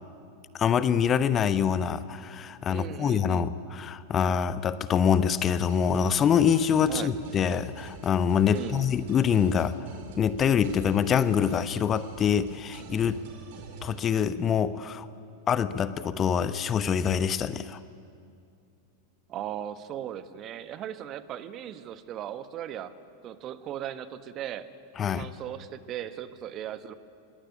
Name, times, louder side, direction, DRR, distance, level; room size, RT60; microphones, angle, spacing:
voice 1, 0.6-9.8 10.2-13.2 13.8-15.1 15.5-17.8 25.0-25.3, left 7 dB, 25° left, 14 dB, 0.9 m, -25 dB
voice 2, 2.7-3.5 6.8-7.1 8.5-8.8 19.3-22.9 23.2-24.7 25.1-26.9, right 11 dB, 35° right, 12 dB, 1.3 m, -37 dB
sound 1, 5.7-14.0, right 5 dB, 50° right, 4.4 m, -46 dB
25.5 x 21.0 x 9.8 m, 2.4 s
figure-of-eight pair, 90°, 0 cm